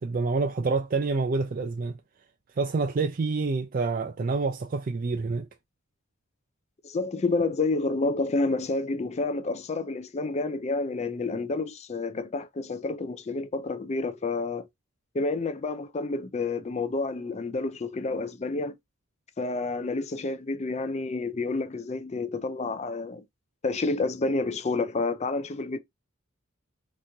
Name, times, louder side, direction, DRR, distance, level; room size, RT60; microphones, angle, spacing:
voice 1, 0.0-2.0 2.6-5.5, right 4 dB, 45° right, 0.4 m, -27 dB
voice 2, 6.8-14.7 15.1-18.8 19.4-23.2 23.6-25.8, left 3 dB, 35° left, 0.4 m, -29 dB
3.4 x 3.0 x 2.6 m
head